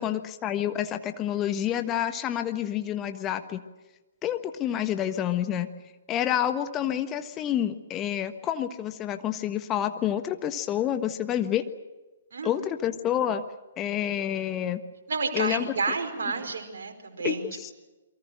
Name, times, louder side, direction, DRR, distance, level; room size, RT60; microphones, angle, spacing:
voice 1, 0.0-3.6 4.2-5.7 6.1-11.6 12.4-13.4 13.8-14.8 15.3-15.7 17.2-17.7, left 10 dB, 20° left, 9 dB, 1.4 m, -28 dB
voice 2, 12.3-12.7 15.1-17.5, right 4 dB, 55° right, 3 dB, 4.8 m, -30 dB
29.0 x 23.5 x 6.4 m, 1.1 s
figure-of-eight pair, 125°, 0 cm